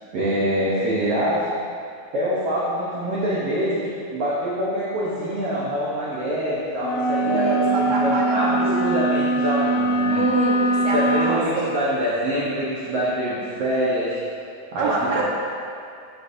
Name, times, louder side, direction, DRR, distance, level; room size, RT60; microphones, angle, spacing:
voice 1, 0.1-1.5 2.1-10.2 10.9-14.2 14.7-15.2, equal, 90° right, -8 dB, 1.3 m, -25 dB
sound 1, 6.8-11.4, right 2 dB, 90° left, 2.5 m, -22 dB
voice 2, 7.2-9.1 10.1-11.7 14.8-15.2, right 3 dB, 75° right, -3 dB, 2.6 m, -26 dB
11.0 x 5.3 x 2.6 m, 2.4 s
omnidirectional pair, 4.2 m